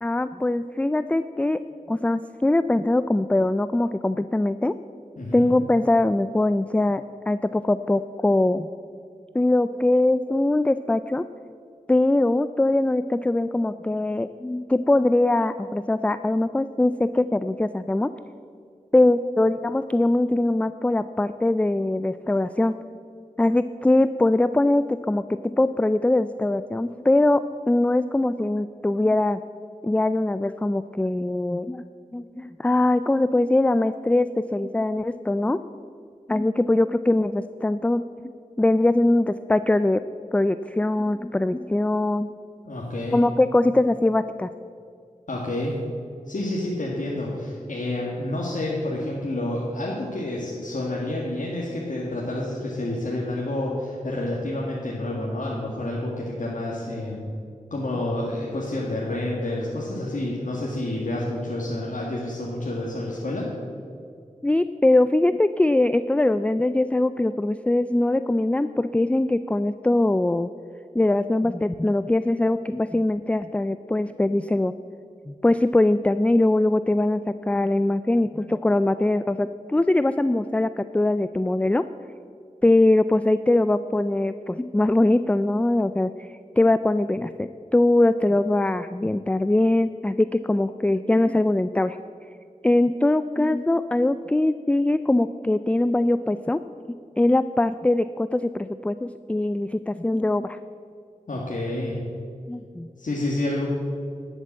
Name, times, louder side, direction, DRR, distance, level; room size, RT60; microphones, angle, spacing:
voice 1, 0.0-1.6 1.9-4.7 5.3-8.7 9.3-11.2 11.9-18.1 18.9-22.7 23.4-29.4 29.8-31.8 32.1-35.6 36.3-40.0 40.3-42.3 43.1-44.5 64.4-70.5 70.9-74.7 75.3-81.8 82.6-86.3 86.6-92.0 92.6-96.6 97.2-100.6 102.5-102.9, left 2 dB, 10° left, 12 dB, 0.3 m, -22 dB
voice 2, 5.2-5.5 42.7-43.2 45.3-45.8 46.3-57.2 57.7-63.5 101.3-102.0 103.0-103.7, left 1 dB, 70° left, -4 dB, 1.9 m, -29 dB
11.5 x 8.1 x 7.4 m, 2.3 s
wide cardioid pair, 70°, 14 cm